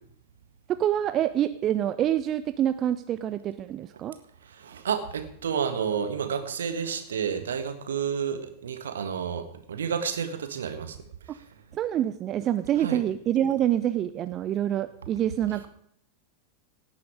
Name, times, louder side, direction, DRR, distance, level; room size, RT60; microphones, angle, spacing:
voice 1, 0.7-4.1 11.3-11.4 11.7-15.7, right 11 dB, 30° right, 12 dB, 0.6 m, -26 dB
voice 2, 4.6-11.0 12.8-13.0, right 7 dB, 65° right, 9 dB, 1.7 m, -30 dB
17.5 x 9.5 x 4.9 m, 0.68 s
figure-of-eight pair, 90°, 0 cm